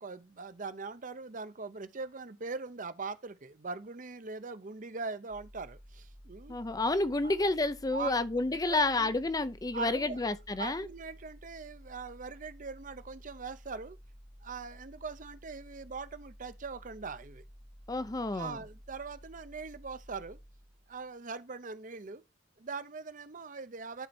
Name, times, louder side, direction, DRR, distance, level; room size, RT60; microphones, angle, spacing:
voice 1, 0.0-6.6 7.2-7.4 7.9-9.2 9.7-10.3 10.6-14.0 14.4-17.4 18.3-20.4 20.9-22.2 22.6-24.1, right 4 dB, 45° right, 0.7 m, -41 dB
sound 1, 5.3-21.1, equal, 75° left, 2.1 m, -54 dB
voice 2, 6.5-10.9 17.9-18.6, left 2 dB, 20° left, 0.5 m, -30 dB
10.5 x 4.2 x 4.2 m
head